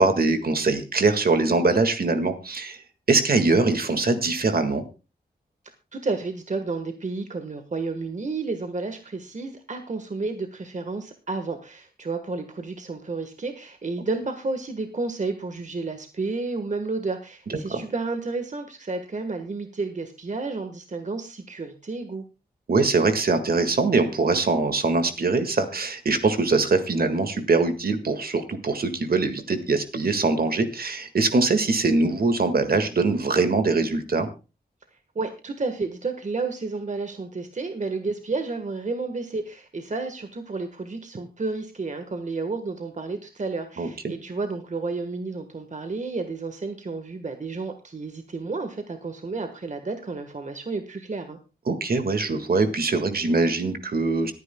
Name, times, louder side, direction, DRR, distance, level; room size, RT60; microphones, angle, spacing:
voice 1, 0.0-2.8 3.1-4.8 17.7-17.8 22.7-34.3 43.8-44.1 51.7-54.3, right 3 dB, 60° right, 8 dB, 1.8 m, -22 dB
voice 2, 5.9-22.2 35.1-51.4, right 3 dB, 45° right, 7 dB, 1.4 m, -31 dB
25.5 x 9.5 x 2.2 m, 0.31 s
wide cardioid pair, 75°, 17 cm